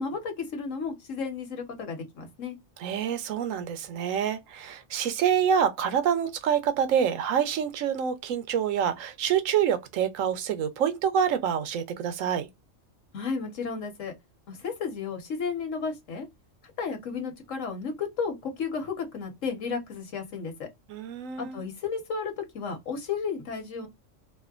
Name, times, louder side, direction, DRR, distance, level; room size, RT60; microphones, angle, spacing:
voice 1, 0.0-2.6 13.1-14.1 14.5-16.3 16.8-20.7 21.4-23.9, left 5 dB, 75° left, 1.4 m, -33 dB
voice 2, 2.8-12.5 20.9-21.6, right 8 dB, 85° right, 1.0 m, -27 dB
3.2 x 2.2 x 2.3 m
omnidirectional pair, 1.3 m